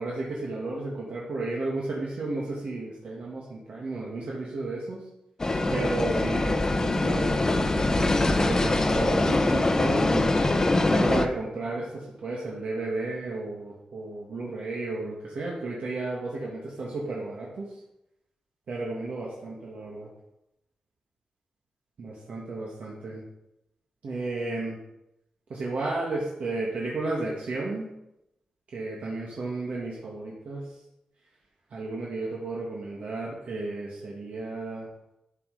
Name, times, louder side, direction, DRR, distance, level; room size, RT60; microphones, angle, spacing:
voice 1, 0.0-5.0 5.7-10.2 10.9-17.8 18.7-20.1 22.0-23.2 24.0-24.8 25.5-27.9 28.7-30.7 31.7-34.9, right 2 dB, 70° right, -4 dB, 2.0 m, -33 dB
sound 1, 5.4-11.3, left 2 dB, 25° left, 0.7 m, -23 dB
12.0 x 6.4 x 5.0 m, 0.88 s
wide cardioid pair, 160°, 2 cm